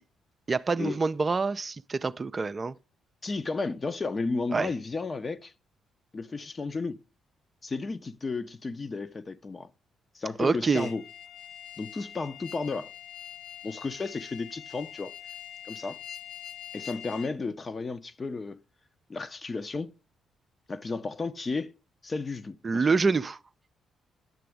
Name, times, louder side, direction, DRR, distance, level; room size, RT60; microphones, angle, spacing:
voice 1, 0.5-2.7 4.5-4.7 10.4-10.9 22.6-23.4, right 4 dB, 35° right, 0.5 m, -26 dB
voice 2, 3.2-5.5 6.1-7.0 7.6-9.7 10.1-11.0 11.8-12.9 13.6-15.1 15.7-16.0 16.7-18.6 19.1-19.9 20.7-21.7 22.0-22.9, left 3 dB, 35° left, 0.8 m, -33 dB
sound 1, 10.7-17.3, left 10 dB, 65° left, 1.0 m, -44 dB
10.5 x 7.6 x 3.5 m
hypercardioid pair, 45°, 0 cm